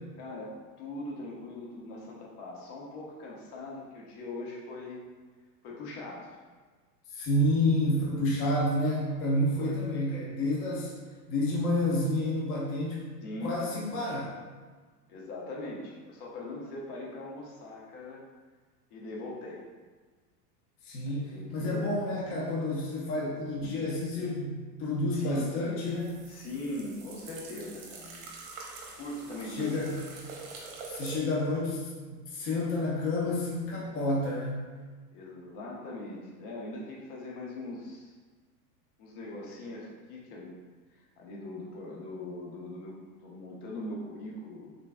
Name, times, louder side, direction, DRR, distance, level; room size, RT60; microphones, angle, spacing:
voice 1, 0.2-5.1 5.6-6.4 9.6-9.8 13.2-13.6 15.1-18.2 18.9-19.6 21.1-21.9 25.1-25.5 26.3-28.2 29.0-29.9 35.1-38.1 39.0-40.5 40.9-42.9 43.2-44.7, left 1 dB, 60° left, -3 dB, 1.1 m, -41 dB
voice 2, 7.1-10.9 11.3-13.0 13.4-14.4 20.8-26.2 29.5-30.0 30.9-34.7, left 1 dB, 25° left, -4 dB, 0.7 m, -29 dB
sound 1, 25.9-31.2, right 4 dB, 55° right, 0.9 m, -45 dB
3.7 x 3.6 x 2.2 m, 1.4 s
hypercardioid pair, 115°, 49 cm